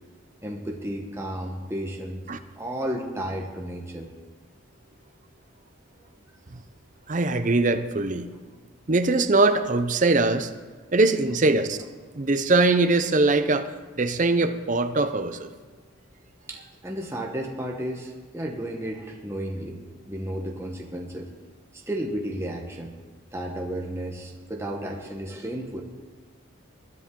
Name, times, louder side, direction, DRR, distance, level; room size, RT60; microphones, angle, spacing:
voice 1, 0.4-2.2 2.6-4.1 16.5-19.8 20.1-21.3 21.7-23.0 23.3-25.8, right 1 dB, 10° right, 0 dB, 1.1 m, -33 dB
voice 2, 7.1-8.3 8.9-10.5 10.9-11.8 12.1-13.7 14.0-15.5, right 2 dB, 35° right, 9 dB, 0.7 m, -22 dB
21.0 x 10.0 x 3.8 m, 1.5 s
head